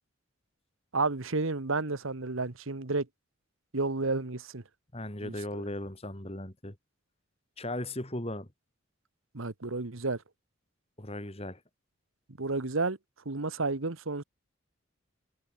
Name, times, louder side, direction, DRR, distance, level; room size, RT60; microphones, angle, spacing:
voice 1, 0.9-3.1 3.7-4.6 5.2-5.6 9.3-10.2 12.4-13.0 13.2-14.2, right 3 dB, 75° right, 1.4 m, -31 dB
voice 2, 4.9-6.7 7.6-8.5 11.0-11.6, left 1 dB, 30° left, 3.2 m, -37 dB
head